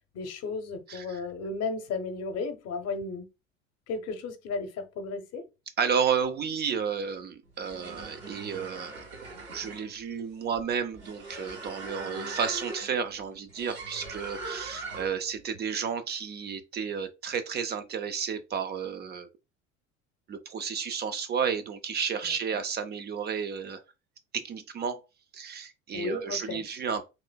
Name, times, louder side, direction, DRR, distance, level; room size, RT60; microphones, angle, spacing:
voice 1, 0.1-3.3 3.9-5.5 22.2-22.6 25.9-26.6, left 4 dB, 40° left, 0.7 m, -34 dB
voice 2, 0.9-1.2 5.8-19.3 20.3-23.8 24.3-25.0 25.3-27.1, right 6 dB, 30° right, 0.4 m, -32 dB
sound 1, 7.5-15.3, right 3 dB, 85° right, 1.4 m, -41 dB
3.1 x 3.1 x 2.2 m
hypercardioid pair, 70°, 38 cm